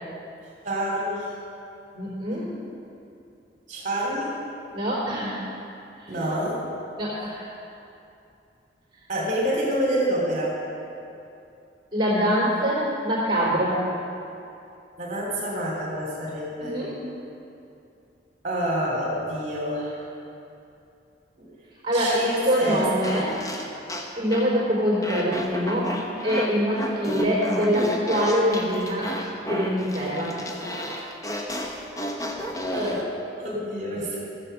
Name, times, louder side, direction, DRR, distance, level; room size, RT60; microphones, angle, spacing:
voice 1, 0.6-1.4 3.7-4.3 6.1-6.6 9.1-10.6 15.0-16.8 18.4-20.0 21.4-21.5 21.9-22.9 23.2-23.4 32.7-34.2, equal, 40° right, -4 dB, 3.0 m, -27 dB
voice 2, 1.9-2.5 4.7-5.4 6.0-6.1 7.0-7.5 11.9-13.8 16.6-16.9 21.8-23.4 24.2-26.0 26.2-29.1 29.4-30.4, equal, 25° right, -5 dB, 3.6 m, -24 dB
sound 1, 22.1-24.5 25.0-33.0, equal, 20° left, 1.0 m, -32 dB
14.0 x 7.6 x 6.7 m, 2.7 s
head